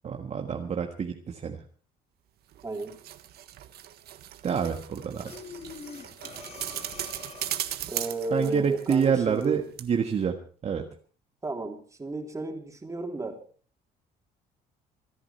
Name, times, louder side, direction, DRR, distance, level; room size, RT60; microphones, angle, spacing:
voice 1, 0.0-1.6 4.4-5.3 8.3-10.4 10.6-10.9, right 7 dB, 40° right, 3 dB, 1.6 m, -27 dB
sound 1, 2.5-9.5 9.8-9.9, right 12 dB, 70° right, 1.6 m, -38 dB
voice 2, 2.6-3.0 7.9-9.6 11.4-13.4, right 2 dB, 20° right, 3 dB, 3.4 m, -33 dB
Breathing, 5.3-7.8, left 5 dB, 40° left, 2.0 m, -44 dB
25.5 x 10.0 x 4.4 m, 0.42 s
cardioid pair, 110°, 17 cm